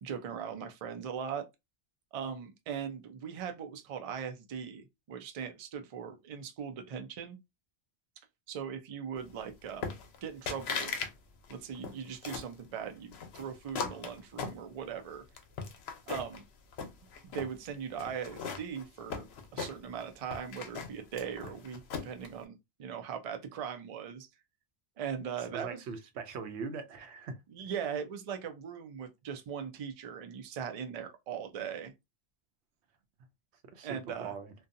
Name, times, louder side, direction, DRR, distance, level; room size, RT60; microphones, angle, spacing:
voice 1, 0.0-1.5 2.1-7.4 8.5-9.9 10.2-11.0 11.5-15.2 16.1-16.4 17.3-19.3 19.5-24.3 25.0-25.8 27.5-31.9 33.8-34.3, right 7 dB, 55° right, 0.4 m, -39 dB
sound 1, 9.8-10.2 10.5-11.1 11.4-12.5 13.1-15.0 15.4-16.4 16.7-17.5 18.0-20.0 20.3-22.3, left 5 dB, 75° left, 0.8 m, -38 dB
voice 2, 25.4-27.4 33.6-34.5, right 5 dB, 85° right, 0.9 m, -41 dB
2.6 x 2.2 x 2.5 m
omnidirectional pair, 1.1 m